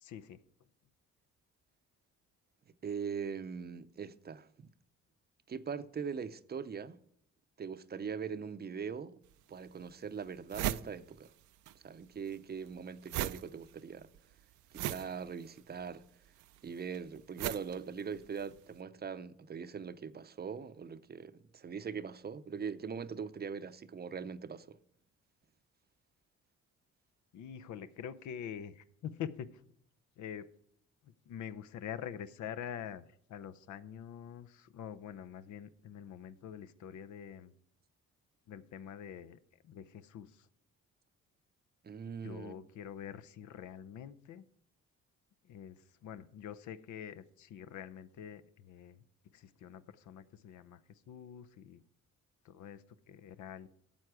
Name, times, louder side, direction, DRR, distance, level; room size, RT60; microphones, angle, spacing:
voice 1, 0.0-0.4 27.3-29.6 30.2-30.5 31.0-37.5 38.5-40.5 42.2-44.5 45.4-49.0 49.3-51.8 52.4-53.7, left 9 dB, 75° left, 0.7 m, -46 dB
voice 2, 2.8-4.7 5.5-7.0 7.6-9.2 9.5-11.3 11.7-14.1 14.7-16.0 16.6-24.8 41.8-42.6, right 6 dB, 35° right, 0.6 m, -41 dB
sound 1, 9.3-9.4 9.9-10.0 10.2-11.8 12.0-18.6, right 13 dB, 75° right, 0.5 m, -39 dB
12.5 x 7.8 x 4.8 m
cardioid pair, 90°, 30 cm